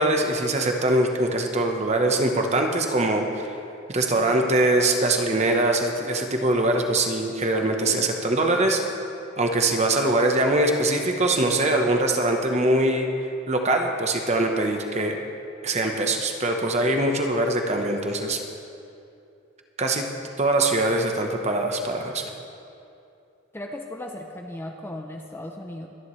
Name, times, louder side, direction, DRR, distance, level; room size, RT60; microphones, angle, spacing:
voice 1, 0.0-3.5 3.9-8.8 9.4-13.1 13.5-15.2 15.6-18.4 19.8-20.0 20.4-22.3, right 2 dB, 30° right, 3 dB, 1.0 m, -22 dB
voice 2, 4.2-4.5 23.5-25.9, left 1 dB, 10° left, 2 dB, 0.6 m, -37 dB
24.0 x 10.5 x 3.2 m, 2.6 s
head